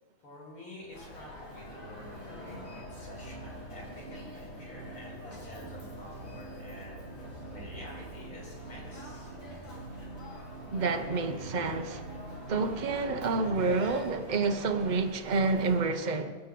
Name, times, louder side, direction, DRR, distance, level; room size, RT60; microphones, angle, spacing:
voice 1, 0.2-9.3, left 1 dB, 80° left, 5.6 m, -49 dB
sound 1, 0.8-13.8, right 2 dB, 30° right, 1.3 m, -46 dB
Human voice, 0.9-15.8, left 1 dB, 65° left, 3.6 m, -47 dB
voice 2, 10.7-12.2 12.5-16.3, right 4 dB, 45° right, 0.5 m, -29 dB
20.5 x 8.5 x 7.7 m
omnidirectional pair, 2.3 m